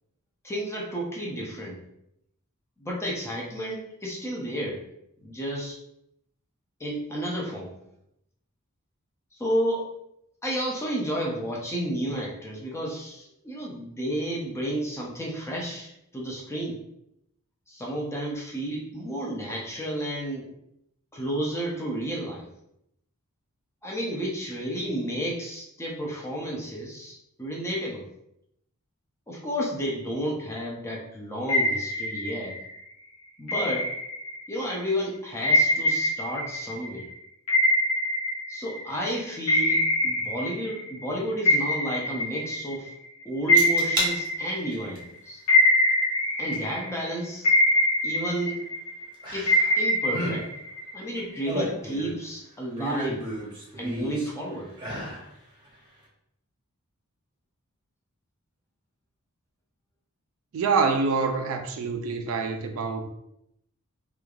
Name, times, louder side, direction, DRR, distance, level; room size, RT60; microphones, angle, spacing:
voice 1, 0.4-1.8 2.8-4.8 5.2-5.8 6.8-7.7 9.4-9.9 10.4-16.8 17.7-20.5 21.1-22.5 23.8-28.1 29.3-32.6 33.4-33.9 34.5-37.1 38.5-42.9 43.2-45.4 46.4-47.5 48.0-48.6 49.3-50.5 50.9-53.3 53.8-54.7, equal, 10° left, 0.5 m, -31 dB
sound 1, 31.5-32.8 33.5-34.6 35.4-39.0 39.5-41.1 41.4-45.0 45.5-47.0 47.4-49.0 49.5-51.2, left 1 dB, 85° left, 0.5 m, -24 dB
sound 2, 43.6-44.1 44.6-45.0 46.5-46.6 49.2-49.8 50.0-50.4 51.2-52.2 52.8-54.3 54.7-55.2 55.7-55.8, right 1 dB, 20° right, 0.8 m, -31 dB
voice 2, 60.5-63.1, right 4 dB, 65° right, 0.3 m, -26 dB
3.1 x 2.3 x 2.4 m
head